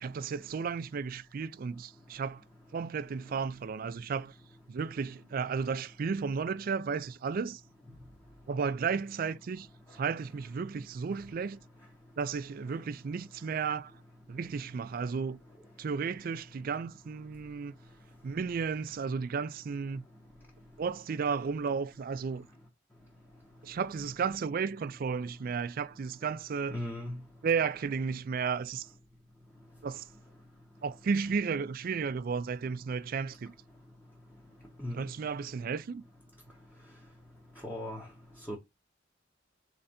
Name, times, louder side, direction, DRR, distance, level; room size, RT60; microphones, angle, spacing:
voice 1, 0.0-2.4 2.7-4.4 4.7-7.6 8.5-11.6 12.2-13.9 14.3-15.4 15.8-17.8 18.2-20.1 20.8-22.5 23.6-26.8 27.4-28.9 29.8-30.1 30.8-33.5 34.9-36.0, right 5 dB, 50° right, 0.4 m, -33 dB
voice 2, 26.7-27.2 34.8-35.0 37.6-38.0 38.5-38.6, left 1 dB, 10° left, 1.0 m, -36 dB
3.9 x 3.3 x 4.2 m
head